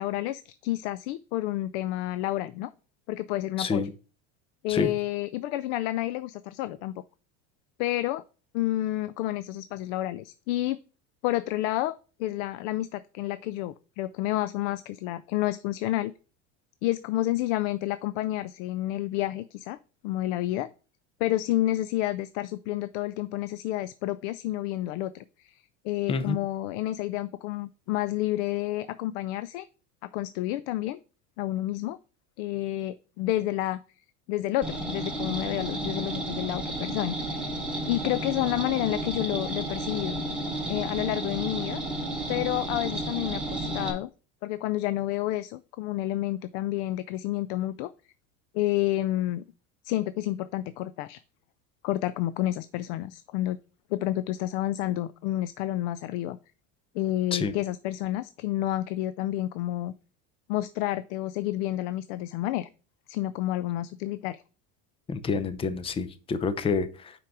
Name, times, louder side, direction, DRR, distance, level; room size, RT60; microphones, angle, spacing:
voice 1, 0.0-2.7 3.1-3.9 4.6-6.9 7.8-8.2 8.5-10.8 11.2-11.9 12.2-16.1 16.8-19.8 20.0-20.7 21.2-29.7 30.0-31.0 31.4-32.0 32.4-33.8 34.3-40.2 40.7-41.8 42.3-44.1 44.4-47.9 48.5-49.4 49.8-51.2 51.8-53.6 53.9-56.4 56.9-59.9 60.5-62.7 63.1-64.4, left 15 dB, 70° left, 14 dB, 0.5 m, -30 dB
voice 2, 3.6-3.9 4.7-4.9 26.1-26.4 57.3-57.5 65.1-67.1, left 4 dB, 15° left, 12 dB, 0.6 m, -28 dB
sound 1, 34.6-43.9, right 1 dB, 5° right, 1.7 m, -32 dB
5.7 x 5.1 x 4.8 m, 0.36 s
supercardioid pair, 130°, 36 cm